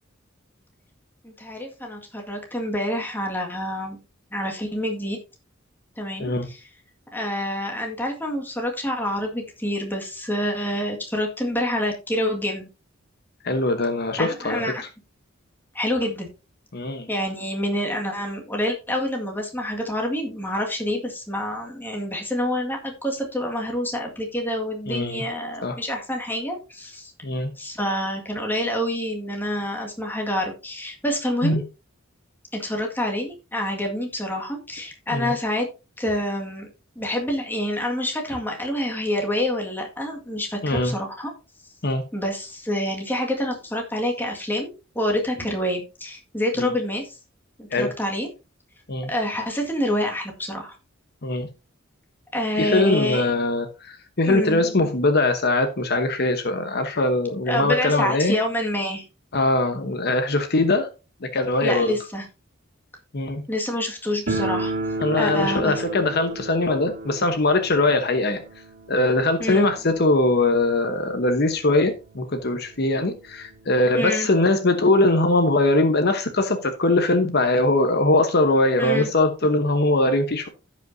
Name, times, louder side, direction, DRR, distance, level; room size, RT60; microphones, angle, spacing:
voice 1, 1.2-4.0 4.3-5.2 6.0-6.7 7.1-12.7 14.2-14.8 15.7-16.3 17.1-27.1 27.6-31.6 32.5-35.7 36.0-36.7 37.0-41.3 42.1-47.2 47.6-48.3 49.1-50.7 52.3-53.3 54.2-54.6 57.5-59.1 61.6-62.3 63.5-65.8 69.4-69.7 73.9-74.3 78.8-79.1, left 1 dB, 10° left, 1.9 m, -27 dB
voice 2, 13.4-14.9 16.7-17.1 24.9-25.2 25.6-25.8 27.2-27.5 31.4-31.6 35.1-35.3 40.6-40.9 41.8-42.0 46.6-46.7 47.7-47.9 48.9-49.1 51.2-51.5 52.6-58.4 59.3-60.9 61.2-61.9 63.1-63.4 65.0-68.4 68.9-80.5, left 2 dB, 55° left, 1.0 m, -21 dB
sound 1, 64.3-71.0 71.2-71.3 71.6-71.7 72.4-72.5 72.8-74.0, right 2 dB, 60° right, 2.2 m, -32 dB
15.5 x 5.3 x 2.7 m
head